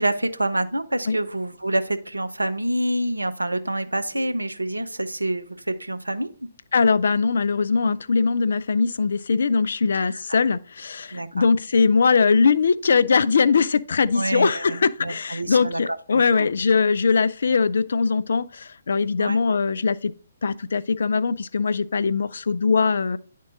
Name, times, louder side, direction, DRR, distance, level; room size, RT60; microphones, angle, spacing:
voice 1, 0.0-6.5 7.8-8.0 10.0-10.1 11.1-11.4 14.1-16.5 19.2-19.4, right 1 dB, 80° right, 0.7 m, -27 dB
voice 2, 6.7-20.1 20.4-23.2, left 5 dB, 60° left, 0.4 m, -21 dB
9.8 x 3.7 x 3.8 m
figure-of-eight pair, 135°, 0 cm